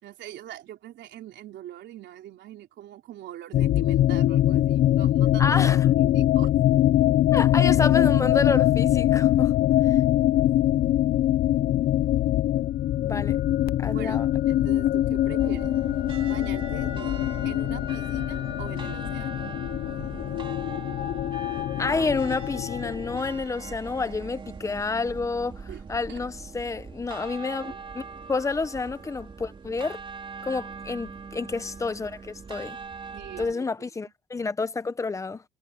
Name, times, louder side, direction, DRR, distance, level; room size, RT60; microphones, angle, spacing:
voice 1, 0.0-6.5 12.9-13.2 13.9-14.2 14.5-15.7 16.2-19.6 25.7-26.2 27.6-27.8 30.9-31.1 33.1-33.6, right 12 dB, 75° right, 3.6 m, -43 dB
sound 1, 3.5-23.4, left 13 dB, 60° left, 0.5 m, -23 dB
voice 2, 5.4-5.9 7.3-9.5 9.9-10.0 13.0-13.4 13.8-14.3 21.8-30.0 30.4-32.8 33.4-35.4, left 4 dB, 15° left, 0.8 m, -29 dB
sound 2, 15.4-33.5, right 5 dB, 25° right, 3.8 m, -41 dB
cardioid pair, 150°, 19 cm